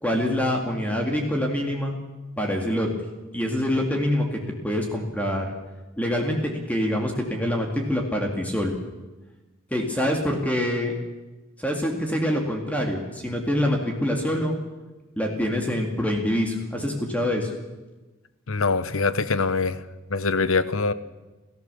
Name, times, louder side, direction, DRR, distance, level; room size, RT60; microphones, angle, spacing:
voice 1, 0.0-1.9 2.4-2.9 3.3-5.5 6.0-8.7 9.7-10.9 11.6-14.5 15.2-17.5, left 1 dB, 5° left, 1 dB, 2.2 m, -25 dB
voice 2, 18.5-19.8 20.1-20.9, left 4 dB, 85° left, 15 dB, 1.0 m, -23 dB
29.5 x 14.0 x 7.0 m, 1.2 s
head